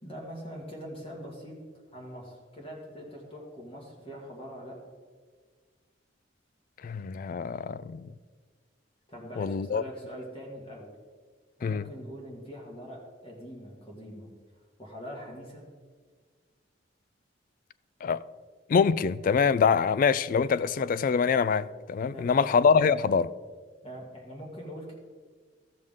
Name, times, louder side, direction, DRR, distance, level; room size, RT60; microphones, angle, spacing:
voice 1, 0.0-1.5 1.9-4.8 9.1-10.9 11.6-14.3 14.8-15.7 22.1-22.5 23.8-24.9, equal, 30° left, 1.9 m, -43 dB
voice 2, 6.8-8.1 9.4-9.8 11.6-11.8 18.0-18.2 18.7-23.3, left 6 dB, 50° left, 0.3 m, -25 dB
14.5 x 6.5 x 3.7 m
head